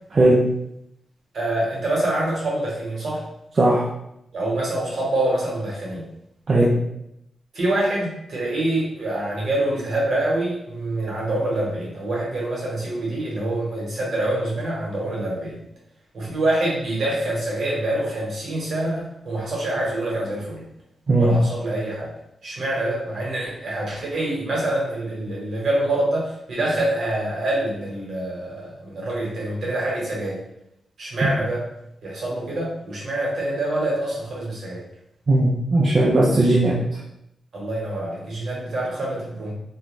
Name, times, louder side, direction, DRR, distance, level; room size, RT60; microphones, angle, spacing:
voice 1, 1.3-3.2 4.3-6.0 7.5-15.6 16.1-20.6 21.2-22.1 22.4-30.4 31.0-31.6 32.0-34.8 37.5-39.5, right 1 dB, 50° right, -4 dB, 1.0 m, -25 dB
voice 2, 35.3-36.8, right 2 dB, 35° right, -5 dB, 0.4 m, -17 dB
2.5 x 2.3 x 3.0 m, 0.80 s
wide cardioid pair, 170°, 0 cm